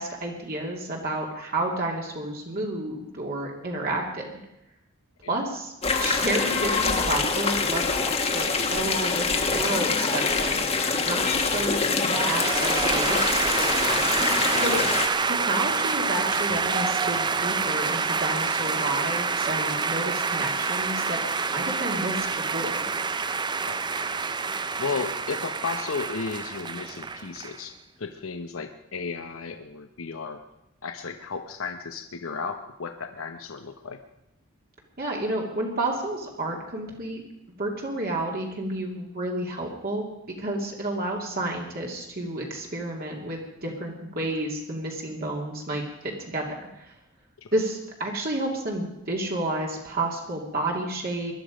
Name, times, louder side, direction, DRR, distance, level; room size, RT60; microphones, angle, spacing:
voice 1, 0.0-4.3 5.3-5.7 6.0-10.6 11.1-13.7 14.5-14.8 15.3-21.2 21.5-22.8 35.0-37.2 37.6-40.0 40.4-46.5 46.8-46.9 47.5-51.3, right 1 dB, 45° right, -1 dB, 2.5 m, -31 dB
sound 1, 5.8-15.1, left 4 dB, 30° left, 1.4 m, -25 dB
sound 2, 12.1-27.6, right 4 dB, 20° right, 0.5 m, -27 dB
voice 2, 24.8-27.7 28.0-30.4 30.8-34.0 47.4-47.5, left 4 dB, 75° left, 6 dB, 0.9 m, -34 dB
21.0 x 12.0 x 5.1 m, 0.88 s
head